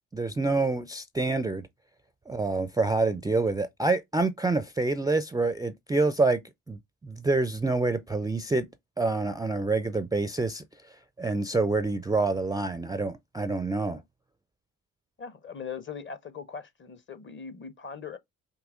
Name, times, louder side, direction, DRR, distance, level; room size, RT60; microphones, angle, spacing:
voice 1, 0.1-1.7 2.3-6.4 6.7-8.7 9.0-10.6 11.2-14.0, right 3 dB, 10° right, 0.4 m, -27 dB
voice 2, 15.2-18.2, left 6 dB, 30° left, 0.7 m, -40 dB
5.4 x 2.7 x 2.4 m
hypercardioid pair, 45°, 40 cm